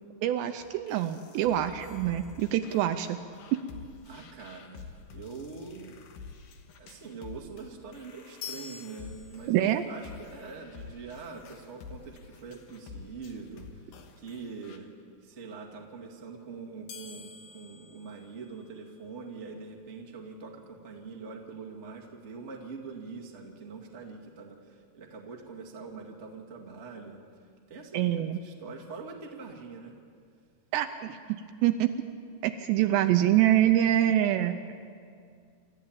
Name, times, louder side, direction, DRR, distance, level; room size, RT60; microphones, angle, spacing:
voice 1, 0.2-3.2 9.5-9.8 27.9-28.4 30.7-31.9 32.4-34.6, right 12 dB, 80° right, 8 dB, 2.6 m, -25 dB
sound 1, 0.6-14.8, left 5 dB, 65° left, 2.4 m, -49 dB
voice 2, 1.3-1.8 4.0-6.0 6.8-14.9 15.2-27.2 27.7-29.9 32.8-32.9, right 4 dB, 45° right, 0 dB, 0.8 m, -44 dB
sound 2, 1.8-3.1 8.4-9.9 16.9-19.0, left 7 dB, 85° left, 4.6 m, -47 dB
28.0 x 13.5 x 8.8 m, 2.3 s
omnidirectional pair, 5.5 m